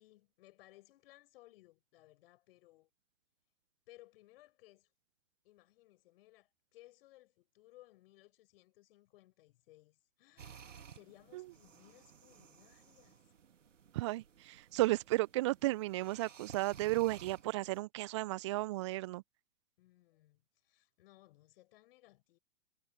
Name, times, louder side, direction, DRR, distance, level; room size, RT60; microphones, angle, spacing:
voice 1, 0.0-2.9 3.9-4.9 5.4-13.3 19.8-22.4, left 17 dB, 50° left, 5.6 m, -62 dB
sound 1, 10.4-17.8, right 7 dB, 70° right, 2.3 m, -56 dB
voice 2, 13.9-19.2, right 18 dB, 25° right, 0.4 m, -34 dB
figure-of-eight pair, 110°, 38 cm